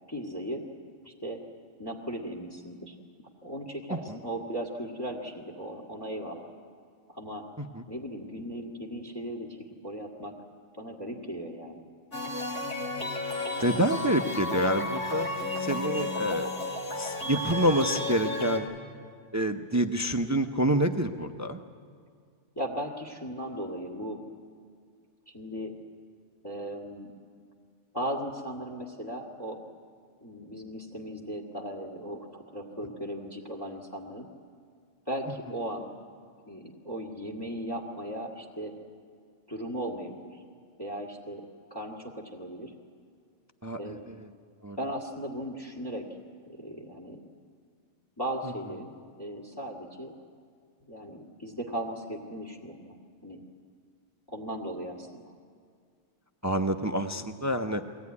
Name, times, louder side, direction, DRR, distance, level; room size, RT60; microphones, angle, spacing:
voice 1, 0.1-0.6 1.1-1.4 1.8-2.9 3.4-6.5 7.1-7.4 7.9-9.6 9.8-10.3 10.8-11.8 22.6-24.2 25.3-25.7 26.4-27.1 27.9-29.6 30.2-34.3 35.1-35.9 36.5-38.7 39.5-40.4 40.8-41.4 41.7-42.7 43.8-44.1 44.8-46.1 46.5-47.2 48.2-50.1 50.9-53.0 53.2-53.4 54.3-55.3, right 1 dB, 20° left, -1 dB, 1.9 m, -37 dB
sound 1, 12.1-18.6, left 2 dB, 80° left, 3.1 m, -33 dB
voice 2, 13.6-15.3 15.6-16.5 16.9-18.7 19.3-21.6 43.6-44.2 44.6-44.8 56.4-57.8, right 1 dB, 20° right, 6 dB, 0.6 m, -27 dB
22.5 x 18.0 x 9.6 m, 2.2 s
omnidirectional pair, 1.2 m